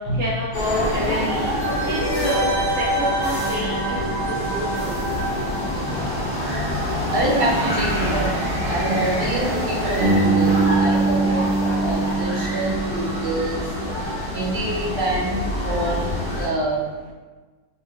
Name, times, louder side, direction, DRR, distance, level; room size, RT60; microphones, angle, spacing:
voice 1, 0.1-1.5 1.8-4.0 4.3-5.2, equal, 10° right, -10 dB, 0.6 m, -28 dB
sound 1, 0.5-16.5, equal, 40° left, 0.9 m, -26 dB
sound 2, 1.6-7.1 7.3-7.4, right 1 dB, 70° left, 1.0 m, -27 dB
voice 2, 7.1-8.3 8.6-13.6 14.3-16.0 16.4-16.9, right 1 dB, 70° right, -5 dB, 1.3 m, -26 dB
Bass guitar, 10.0-14.0, right 3 dB, 85° right, 1.5 m, -22 dB
3.6 x 3.0 x 2.3 m, 1.3 s
omnidirectional pair, 2.0 m